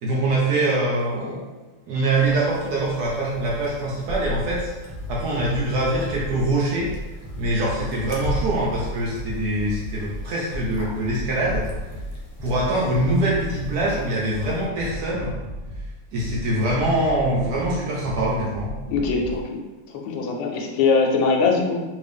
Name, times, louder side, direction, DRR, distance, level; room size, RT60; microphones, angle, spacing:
voice 1, 0.0-1.5 1.9-4.7 5.1-6.9 7.4-11.6 12.4-15.3 16.1-18.8, right 1 dB, 80° right, -5 dB, 0.9 m, -23 dB
sound 1, 2.2-14.7, left 1 dB, 70° left, 1.1 m, -37 dB
sound 2, 4.4-19.4, equal, 10° right, 0.8 m, -35 dB
voice 2, 18.9-19.6 20.0-21.8, left 4 dB, 85° left, 0 dB, 1.5 m, -21 dB
3.3 x 2.6 x 3.4 m, 1.2 s
omnidirectional pair, 2.4 m